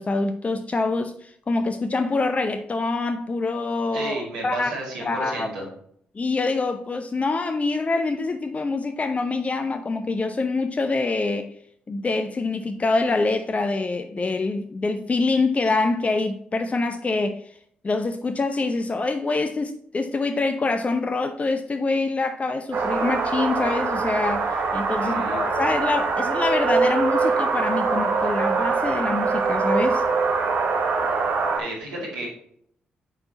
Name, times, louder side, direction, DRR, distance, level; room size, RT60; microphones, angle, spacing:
voice 1, 0.0-4.7 5.0-5.5 6.1-11.5 11.9-17.5 17.8-30.0, left 3 dB, 30° left, 0.7 m, -25 dB
voice 2, 3.9-5.7 25.0-25.4 31.5-32.3, right 2 dB, 80° right, 2.4 m, -32 dB
sound 1, 22.7-31.6, right 4 dB, 60° right, 1.3 m, -23 dB
9.7 x 4.4 x 2.9 m
figure-of-eight pair, 40°, 4 cm